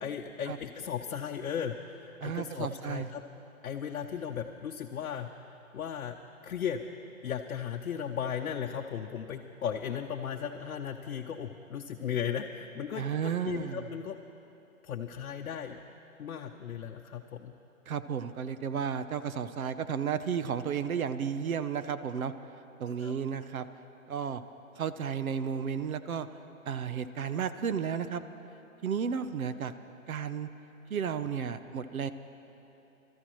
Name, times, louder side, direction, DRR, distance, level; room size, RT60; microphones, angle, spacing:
voice 1, 0.0-3.2 3.6-6.2 6.4-6.8 7.2-14.2 14.8-15.8 16.2-17.5 23.0-23.1, left 8 dB, 75° left, 3 dB, 0.8 m, -36 dB
voice 2, 2.2-3.1 13.0-13.9 17.9-22.3 22.8-23.6 24.1-24.4 24.8-26.3 26.7-28.2 28.8-29.7 30.1-30.5 30.9-32.1, right 7 dB, 80° right, 11 dB, 0.8 m, -33 dB
24.5 x 13.5 x 3.1 m, 2.9 s
hypercardioid pair, 170°, 42 cm